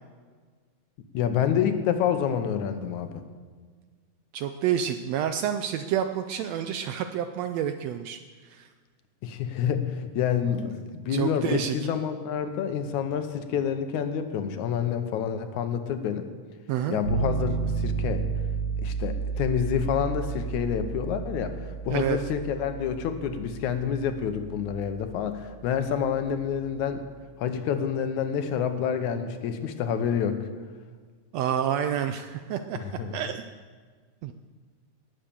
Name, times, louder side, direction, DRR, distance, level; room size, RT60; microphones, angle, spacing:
voice 1, 1.1-3.1 9.2-16.3 16.9-18.2 18.8-21.6 21.9-27.0 27.4-30.4 32.8-33.2, left 8 dB, 80° left, 8 dB, 2.3 m, -28 dB
voice 2, 4.3-8.7 11.1-11.8 16.7-17.0 21.9-22.2 31.3-32.8 33.1-33.4 34.2-34.3, right 9 dB, 80° right, 8 dB, 1.5 m, -29 dB
sound 1, 17.1-26.9, right 5 dB, 60° right, 2.7 m, -32 dB
19.0 x 7.4 x 6.9 m, 1.6 s
omnidirectional pair, 3.5 m